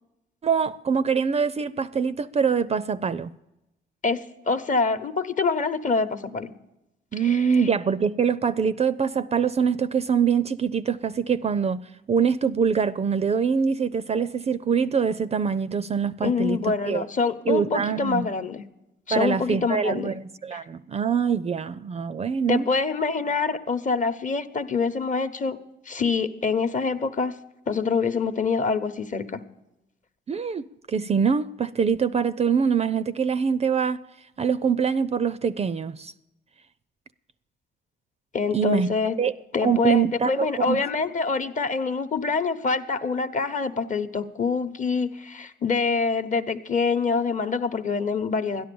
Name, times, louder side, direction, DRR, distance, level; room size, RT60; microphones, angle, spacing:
voice 1, 0.4-3.3 7.1-11.8 12.1-17.0 17.5-18.3 19.1-22.7 30.3-34.0 34.4-36.1 38.5-38.9 39.2-39.3 39.6-40.8, right 6 dB, 30° right, 0.4 m, -24 dB
voice 2, 4.0-6.5 7.2-7.7 16.2-18.6 19.1-20.1 20.5-20.6 22.5-25.6 25.9-27.3 27.7-29.4 38.3-39.1 39.5-48.6, left 4 dB, 40° left, 0.9 m, -25 dB
13.0 x 10.5 x 6.9 m
cardioid pair, 90°, 20 cm